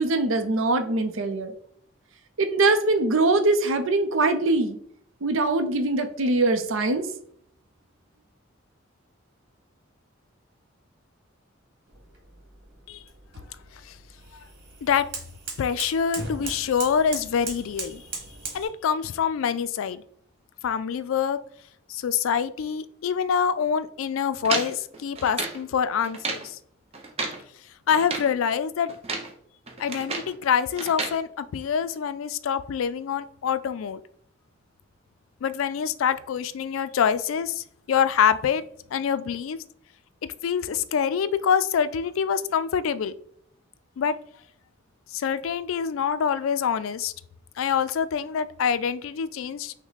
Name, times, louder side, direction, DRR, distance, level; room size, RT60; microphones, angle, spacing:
voice 1, 0.0-1.5 2.4-4.8 5.2-7.1, right 2 dB, 75° right, 8 dB, 0.6 m, -22 dB
sound 1, 11.9-18.7, right 4 dB, 55° right, 1.5 m, -39 dB
voice 2, 15.6-18.0 18.5-20.0 20.6-21.4 21.9-26.6 27.9-28.9 29.8-34.0 35.4-38.6 38.9-39.6 40.4-43.1 44.0-44.1 45.1-47.1 47.6-49.7, left 7 dB, 80° left, 14 dB, 0.3 m, -25 dB
sound 2, 24.4-25.6 26.0-26.5 26.9-27.4 27.9-28.3 28.9-29.3 29.7-30.3 30.8-31.2, right 3 dB, 30° right, 0.8 m, -32 dB
6.0 x 2.1 x 4.0 m, 0.66 s
head